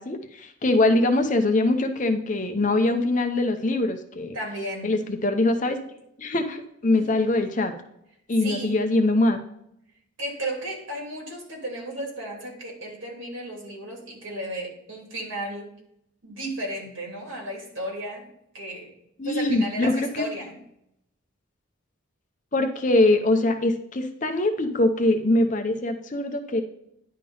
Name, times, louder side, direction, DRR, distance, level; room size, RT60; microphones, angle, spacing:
voice 1, 0.0-4.4 4.8-5.8 6.2-7.7 8.3-9.4 19.2-20.3 22.5-26.6, left 2 dB, 35° left, 6 dB, 0.7 m, -23 dB
voice 2, 4.3-4.9 6.9-7.1 8.4-8.8 10.2-15.7 16.2-18.3 18.5-18.9 19.2-20.5, right 1 dB, 65° right, -1 dB, 2.8 m, -34 dB
10.5 x 3.7 x 5.4 m, 0.75 s
head